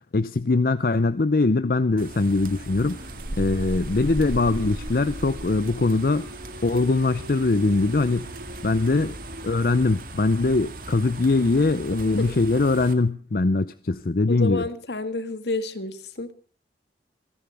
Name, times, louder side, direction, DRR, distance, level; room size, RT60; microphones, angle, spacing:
voice 1, 0.1-3.1 3.4-6.3 6.6-8.3 8.6-9.2 9.4-14.7, left 3 dB, 55° left, 0.6 m, -22 dB
sound 1, 2.0-12.9, right 1 dB, 50° right, 1.9 m, -37 dB
sound 2, 2.9-9.5, right 1 dB, 80° right, 3.3 m, -44 dB
voice 2, 14.3-16.3, left 2 dB, 75° left, 1.8 m, -30 dB
28.5 x 11.0 x 3.4 m
head